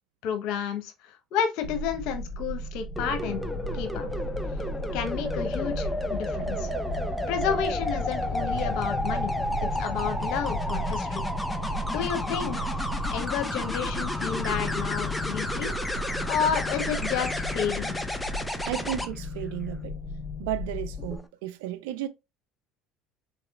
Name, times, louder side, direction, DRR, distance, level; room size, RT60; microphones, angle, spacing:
voice 1, 0.2-3.4 3.7-4.1 4.9-6.7 7.3-9.3 9.6-11.2 11.9-12.6 13.1-15.7 16.3-18.0, left 8 dB, 70° left, 0.9 m, -31 dB
sound 1, 1.6-21.2, left 1 dB, 40° left, 1.0 m, -35 dB
sound 2, 3.0-19.1 21.0-21.2, left 1 dB, 5° left, 0.6 m, -31 dB
voice 2, 18.6-20.0 20.4-22.1, right 13 dB, 80° right, 0.4 m, -33 dB
4.0 x 2.9 x 2.3 m
supercardioid pair, 85°, 0 cm